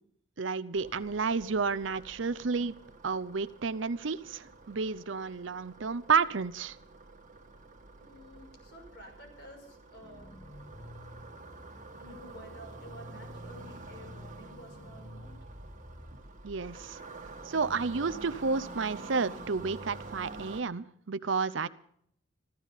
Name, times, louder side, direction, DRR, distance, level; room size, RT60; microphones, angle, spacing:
voice 1, 0.4-2.7 3.0-6.8 16.4-17.0 17.5-21.7, right 5 dB, 70° right, 0.7 m, -31 dB
sound 1, 0.7-20.6, right 3 dB, 40° right, 1.7 m, -48 dB
voice 2, 8.0-10.3 12.0-15.3, equal, 60° left, 6.0 m, -51 dB
sound 2, 10.0-16.2, left 1 dB, 30° left, 1.4 m, -50 dB
15.0 x 14.0 x 5.6 m
head